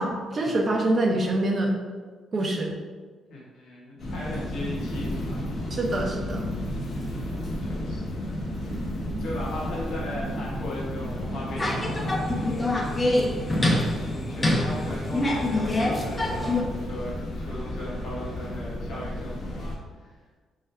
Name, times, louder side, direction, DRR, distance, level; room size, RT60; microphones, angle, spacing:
voice 1, 0.0-1.7 2.3-2.7 5.7-6.4, right 1 dB, 40° right, 0 dB, 0.6 m, -25 dB
voice 2, 3.3-5.4 7.6-8.4 9.2-12.2 14.3-20.1, left 1 dB, 70° left, -6 dB, 1.2 m, -37 dB
sound 1, 4.0-19.8, left 1 dB, 55° left, 0.7 m, -33 dB
sound 2, 11.6-16.6, left 1 dB, 25° left, 0.5 m, -25 dB
3.7 x 2.1 x 4.2 m, 1.4 s
cardioid pair, 90°, 0 cm